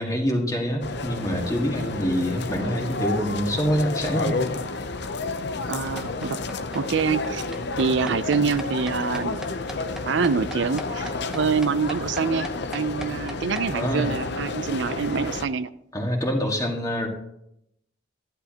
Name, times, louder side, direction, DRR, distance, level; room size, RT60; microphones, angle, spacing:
voice 1, 0.0-4.3 13.7-14.2 15.9-17.1, equal, 20° left, 1 dB, 1.8 m, -25 dB
sound 1, 0.8-15.5, left 3 dB, 60° left, 0.7 m, -31 dB
sound 2, 5.7-13.7, equal, 5° right, 1.0 m, -39 dB
voice 2, 5.7-6.4 6.7-7.4 7.8-9.4 10.1-15.7, right 5 dB, 65° right, 14 dB, 0.5 m, -25 dB
13.5 x 11.5 x 2.9 m, 0.78 s
head